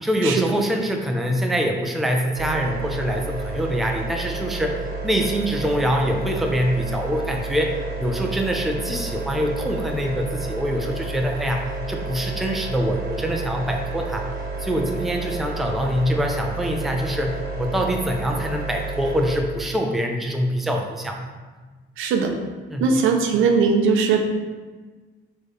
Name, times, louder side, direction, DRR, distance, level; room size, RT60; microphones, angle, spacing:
voice 1, 0.0-14.3 14.6-21.2 22.7-22.8, equal, ahead, 2 dB, 0.5 m, -24 dB
sound 1, 2.3-19.4, right 3 dB, 50° right, 0.9 m, -31 dB
voice 2, 22.0-22.3 22.8-24.2, right 5 dB, 85° right, 4 dB, 0.6 m, -19 dB
4.7 x 3.1 x 3.2 m, 1.3 s
cardioid pair, 90°, 20 cm